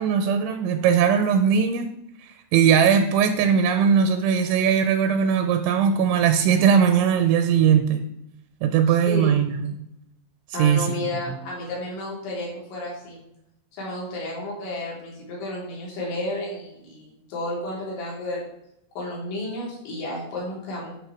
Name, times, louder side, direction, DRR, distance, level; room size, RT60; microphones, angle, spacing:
voice 1, 0.0-1.9 2.2-8.0 8.6-9.7 10.5-10.9 11.3-11.4, right 7 dB, 85° right, 8 dB, 2.9 m, -20 dB
voice 2, 8.9-9.3 10.5-13.2 13.8-18.4 19.0-20.9, left 1 dB, 65° left, -4 dB, 5.9 m, -32 dB
12.0 x 5.2 x 6.4 m, 0.82 s
omnidirectional pair, 5.8 m